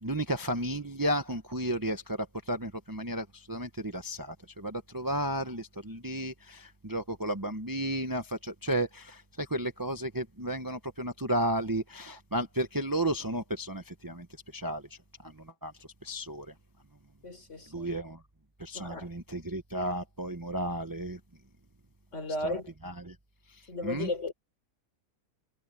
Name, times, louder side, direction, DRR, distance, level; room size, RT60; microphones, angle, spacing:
voice 1, 0.0-14.3 14.5-14.8 15.2-15.7 16.0-16.5 17.7-18.2 18.6-21.2 22.4-22.6 22.8-23.1 23.5-24.1, right 1 dB, 15° right, 1.0 m, -33 dB
voice 2, 17.2-17.9 18.7-19.1 22.1-22.7 23.7-24.3, left 2 dB, 55° left, 4.4 m, -35 dB
omnidirectional pair, 1.5 m